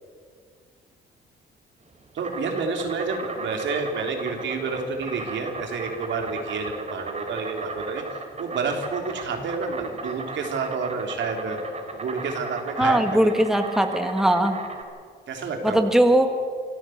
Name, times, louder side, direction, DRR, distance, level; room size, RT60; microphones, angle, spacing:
Insect, 1.8-14.8, right 3 dB, 35° right, 3.8 m, -37 dB
voice 1, 2.1-8.0 8.4-11.6 11.9-13.3 15.3-15.9, right 4 dB, 70° right, 3 dB, 3.6 m, -29 dB
voice 2, 12.8-14.6 15.6-16.3, right 1 dB, ahead, 6 dB, 1.7 m, -20 dB
25.5 x 13.5 x 8.0 m, 2.1 s
cardioid pair, 90°, 20 cm